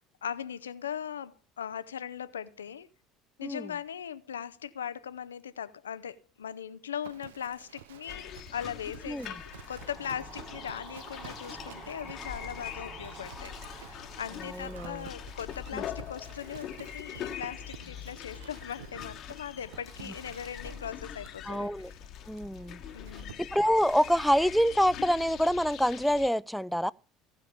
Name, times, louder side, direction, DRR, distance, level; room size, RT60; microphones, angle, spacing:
voice 1, 0.2-2.9 3.4-9.4 9.7-22.0 22.9-23.4, left 8 dB, 90° left, 0.5 m, -39 dB
Livestock farm animals working animals, 7.0-24.6, right 11 dB, 80° right, 0.6 m, -52 dB
sound 1, 8.1-26.3, left 9 dB, 50° left, 1.2 m, -43 dB
sound 2, 9.4-17.6, right 3 dB, 40° right, 3.7 m, -50 dB
voice 2, 14.5-15.1 15.7-15.8 21.5-21.9 22.3-22.8 23.4-26.9, equal, ahead, 0.5 m, -26 dB
15.5 x 5.2 x 7.2 m
hypercardioid pair, 75°, 0 cm